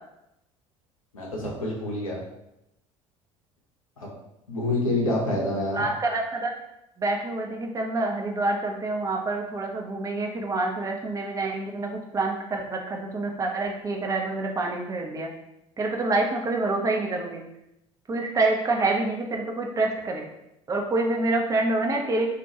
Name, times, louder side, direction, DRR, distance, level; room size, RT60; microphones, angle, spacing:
voice 1, 1.1-2.2 4.0-4.1 4.5-5.8, left 1 dB, 80° left, -2 dB, 0.6 m, -27 dB
voice 2, 5.7-6.5 7.0-15.3 15.8-17.4 18.1-20.3 20.7-22.3, right 2 dB, 20° right, 1 dB, 0.5 m, -27 dB
2.3 x 2.2 x 2.7 m, 0.85 s
figure-of-eight pair, 60°, 17 cm